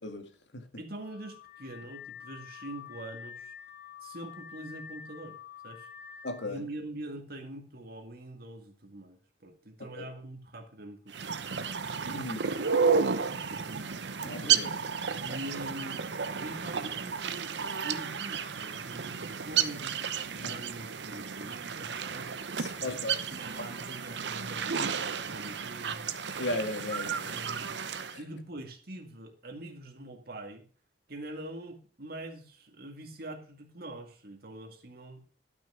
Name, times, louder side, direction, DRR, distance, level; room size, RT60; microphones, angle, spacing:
voice 1, 0.0-0.6 6.2-6.6 9.8-10.1 12.1-12.4 14.2-14.7 20.4-20.6 22.6-23.2 26.4-27.4 28.1-28.2, left 2 dB, 90° left, 2.0 m, -36 dB
voice 2, 0.8-3.5 4.0-5.3 5.6-5.9 6.4-11.4 12.4-13.7 15.2-16.0 16.4-20.0 20.3-23.0 23.3-26.1 27.2-27.7 28.2-30.6 31.1-35.2, right 1 dB, 60° right, 2.1 m, -44 dB
Car / Alarm, 1.0-6.5, left 8 dB, 45° left, 3.0 m, -47 dB
sound 1, 11.1-28.2, right 6 dB, 80° right, 0.8 m, -32 dB
12.0 x 6.2 x 6.2 m
head